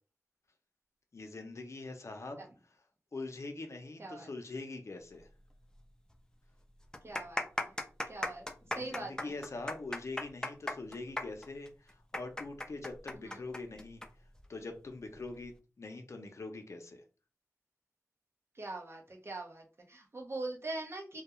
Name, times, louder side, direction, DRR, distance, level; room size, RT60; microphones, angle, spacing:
voice 1, 1.1-2.4 3.1-5.3 8.6-14.0 14.5-15.5 15.8-17.0, left 3 dB, 60° left, 5 dB, 0.6 m, -43 dB
sound 1, 5.7-5.8 6.1-6.2 6.8-14.1 14.4-14.5 15.2-15.5, left 1 dB, 10° left, 0.4 m, -37 dB
voice 2, 7.0-7.5 8.1-8.5 8.8-9.1 13.1-13.4 18.6-21.2, right 2 dB, 50° right, 1 dB, 0.8 m, -42 dB
2.3 x 2.2 x 2.9 m, 0.35 s
cardioid pair, 50°, 6 cm